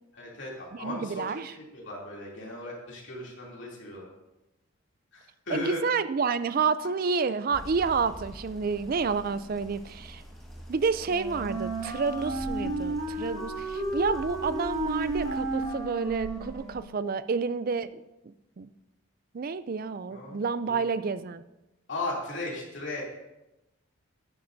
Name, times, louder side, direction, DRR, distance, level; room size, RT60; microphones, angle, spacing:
voice 1, 0.1-4.1 5.1-5.8 20.1-20.4 20.7-20.8 21.9-23.0, left 2 dB, 55° left, -3 dB, 2.9 m, -37 dB
voice 2, 0.7-1.5 5.5-10.2 10.7-18.0 18.6-18.7 19.3-21.4, right 5 dB, 40° right, 14 dB, 0.4 m, -29 dB
sound 1, 7.5-16.8, equal, ahead, 1.4 m, -44 dB
Wind instrument woodwind instrument, 11.1-17.0, right 2 dB, 60° right, 2.2 m, -33 dB
11.5 x 10.5 x 2.7 m, 0.96 s
head